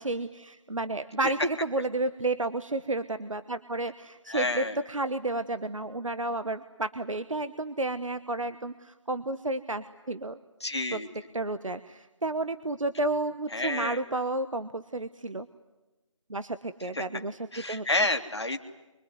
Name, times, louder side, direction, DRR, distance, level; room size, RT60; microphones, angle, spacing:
voice 1, 0.0-10.4 10.9-11.0 11.3-15.5 16.3-17.4 17.7-17.8, right 2 dB, 75° right, 11 dB, 1.3 m, -31 dB
voice 2, 4.3-4.8 10.6-11.1 13.5-14.0 16.9-17.0 17.5-18.6, left 2 dB, 55° left, 5 dB, 2.4 m, -29 dB
24.5 x 24.5 x 9.6 m, 1.1 s
figure-of-eight pair, 180°, 17 cm